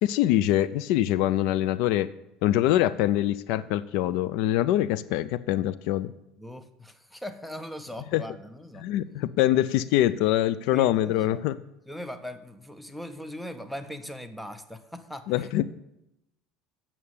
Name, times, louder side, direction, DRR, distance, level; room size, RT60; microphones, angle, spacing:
voice 1, 0.0-2.1 2.4-6.1 8.1-8.2 8.8-11.6 15.3-15.6, left 13 dB, 70° left, 16 dB, 0.4 m, -24 dB
voice 2, 6.4-8.9 10.7-11.5 11.9-15.5, equal, ahead, 10 dB, 0.7 m, -40 dB
8.5 x 7.0 x 7.2 m, 0.87 s
cardioid pair, 130°, 0 cm